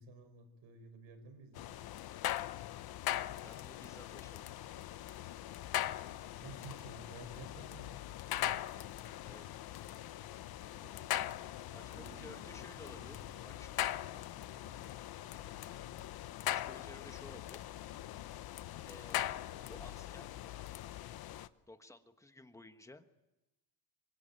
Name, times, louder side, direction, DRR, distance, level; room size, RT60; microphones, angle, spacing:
voice 1, 0.0-1.8 6.4-8.2 10.8-11.3 12.2-12.8, right 3 dB, 75° right, 9 dB, 5.7 m, -54 dB
sound 1, 1.6-21.5, left 13 dB, 50° left, 0.9 m, -41 dB
voice 2, 3.3-4.5 8.7-9.5 11.7-13.9 16.4-17.7 18.8-20.3 21.7-23.1, left 2 dB, 5° left, 8 dB, 1.3 m, -55 dB
sound 2, 9.1-16.4, right 4 dB, 25° right, 2.1 m, -63 dB
26.5 x 25.0 x 8.9 m, 0.99 s
cardioid pair, 165°, 47 cm